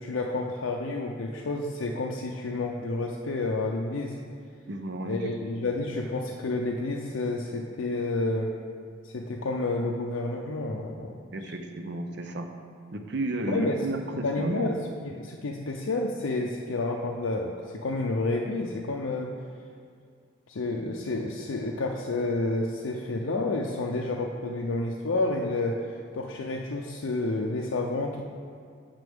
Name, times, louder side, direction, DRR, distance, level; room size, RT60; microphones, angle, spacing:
voice 1, 0.0-4.1 5.0-8.5 9.0-11.2 13.5-13.9 14.2-14.8 15.2-19.3 20.5-28.2, left 2 dB, 85° left, 0 dB, 0.6 m, -30 dB
voice 2, 4.7-5.3 11.3-12.5 12.9-14.7, right 2 dB, 55° right, 5 dB, 0.6 m, -32 dB
9.3 x 6.8 x 3.6 m, 2.2 s
head